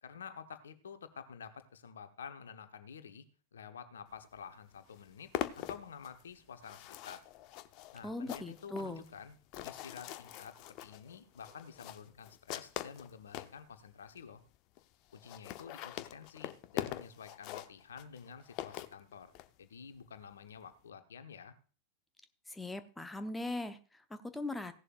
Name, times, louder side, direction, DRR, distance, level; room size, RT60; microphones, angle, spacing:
voice 1, 0.0-3.3 3.5-7.2 7.9-9.4 9.6-10.5 10.8-14.4 15.1-19.3 19.6-21.5, left 6 dB, 65° left, 9 dB, 1.1 m, -50 dB
sound 1, 4.4-4.5 4.7-13.6 14.2-14.3 14.5-14.6 14.8-14.9 15.1-19.5, left 14 dB, 40° left, 0.7 m, -43 dB
voice 2, 8.0-9.0 22.5-24.7, left 2 dB, 5° left, 9 dB, 0.9 m, -40 dB
16.5 x 11.0 x 2.5 m, 0.38 s
figure-of-eight pair, 90°, 0 cm